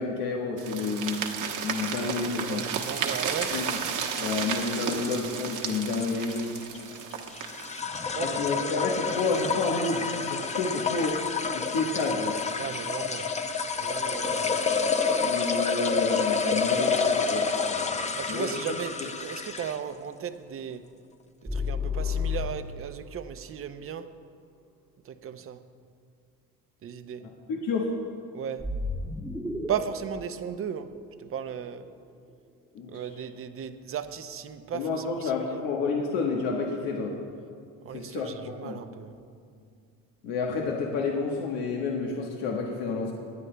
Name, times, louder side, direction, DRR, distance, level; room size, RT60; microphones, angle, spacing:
voice 1, 0.0-2.6 3.5-3.8 4.1-6.5 8.2-11.2 11.5-12.4 15.2-18.5 19.0-19.1 27.2-27.9 32.7-33.0 34.7-37.1 37.9-38.8 40.2-43.1, left 4 dB, 90° left, 1.2 m, -30 dB
sound 1, 0.6-7.8, right 7 dB, 60° right, 1.1 m, -33 dB
voice 2, 2.4-3.6 7.8-8.5 12.6-13.3 13.8-14.5 18.1-20.9 21.4-24.2 25.0-25.6 26.8-27.3 28.3-28.7 29.7-31.9 32.9-35.6 37.8-39.2, right 8 dB, 40° right, 0.6 m, -36 dB
sound 2, 2.7-19.9, left 5 dB, 20° left, 0.6 m, -29 dB
sound 3, 21.5-23.0 28.6-31.7, left 4 dB, ahead, 1.1 m, -32 dB
25.5 x 9.6 x 2.2 m
cardioid pair, 110°, 34 cm